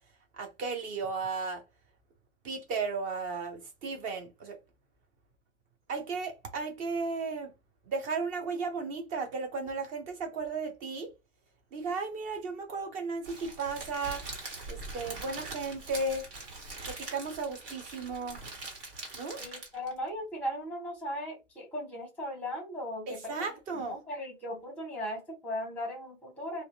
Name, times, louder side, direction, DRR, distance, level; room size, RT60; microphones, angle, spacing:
voice 1, 0.4-1.6 2.4-4.6 5.9-7.5 7.9-11.1 11.7-14.2 14.7-16.2 16.9-18.4 19.1-19.4 23.1-24.0, right 4 dB, 20° right, 0.6 m, -35 dB
Crackle, 13.2-20.0, right 3 dB, 55° right, 1.4 m, -43 dB
voice 2, 19.3-23.5 23.7-26.6, equal, 5° left, 1.1 m, -37 dB
2.7 x 2.2 x 2.4 m
hypercardioid pair, 120°, 40 cm